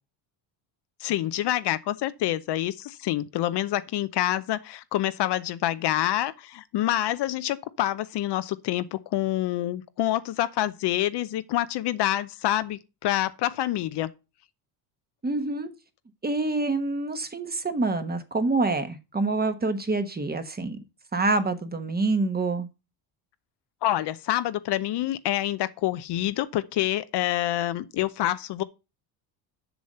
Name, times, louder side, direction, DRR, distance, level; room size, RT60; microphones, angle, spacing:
voice 1, 1.0-14.1 23.8-28.6, left 14 dB, 55° left, 0.7 m, -27 dB
voice 2, 15.2-15.7 16.2-20.8 21.1-22.7, right 3 dB, 20° right, 1.1 m, -26 dB
7.1 x 6.2 x 5.4 m
cardioid pair, 95°, 47 cm